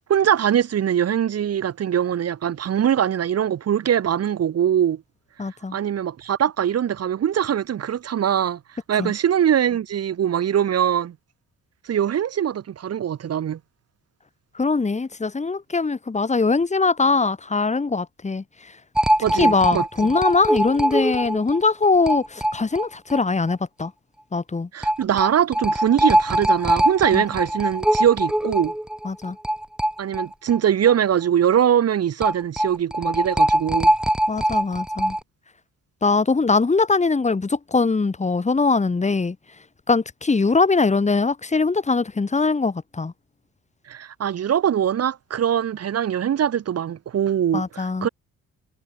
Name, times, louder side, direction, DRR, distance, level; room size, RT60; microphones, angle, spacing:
voice 1, 0.1-5.0 5.7-8.6 8.9-11.1 11.8-13.6 19.2-20.1 24.7-28.7 30.0-33.9 43.9-48.1, right 9 dB, 55° right, 1.5 m, -22 dB
voice 2, 5.4-5.8 9.0-9.1 14.6-18.4 19.4-23.9 24.3-24.7 27.1-27.2 29.0-29.4 34.3-35.2 36.0-39.4 39.9-43.1 47.5-48.1, left 4 dB, 25° left, 2.4 m, -21 dB
sound 1, 19.0-23.2 23.5-23.6 23.8-23.9 24.8-30.6 30.9-31.0 32.2-35.2, right 1 dB, 5° right, 0.6 m, -22 dB
cardioid pair, 90°, 30 cm